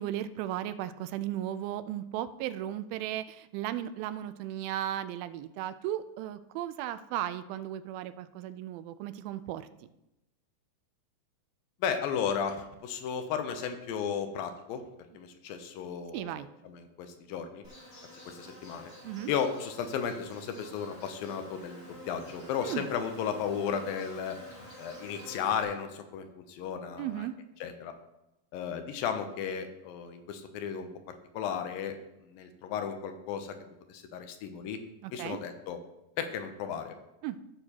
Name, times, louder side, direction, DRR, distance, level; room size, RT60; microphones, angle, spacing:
voice 1, 0.0-9.7 16.1-16.5 19.0-19.3 22.6-22.9 27.0-27.3 35.0-35.4 37.2-37.4, right 12 dB, 85° right, 12 dB, 2.4 m, -35 dB
voice 2, 11.8-14.8 15.1-17.6 18.3-18.9 19.3-24.4 24.8-27.3 27.6-27.9 28.5-33.6 33.9-34.8 35.1-35.8 36.2-36.9, left 7 dB, 80° left, 7 dB, 2.4 m, -34 dB
Insect, 17.6-25.6, left 1 dB, 60° left, 0.6 m, -49 dB
14.5 x 6.5 x 2.9 m, 0.91 s
omnidirectional pair, 4.2 m